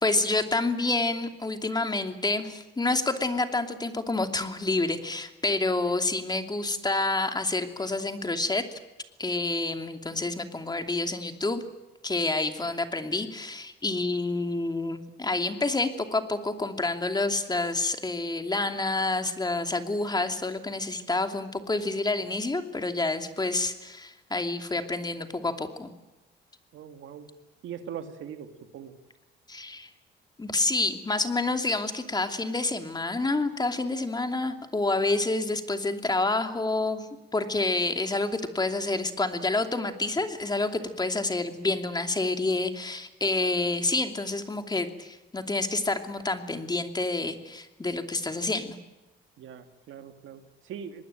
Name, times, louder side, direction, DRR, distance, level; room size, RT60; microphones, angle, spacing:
voice 1, 0.0-8.8 9.2-11.6 12.0-25.9 29.5-29.9 30.4-48.8, left 2 dB, 20° left, 6 dB, 2.8 m, -28 dB
voice 2, 26.7-27.3 27.6-28.9 49.4-51.0, right 8 dB, 80° right, 8 dB, 2.3 m, -41 dB
25.5 x 20.0 x 9.0 m, 1.0 s
cardioid pair, 90°, 20 cm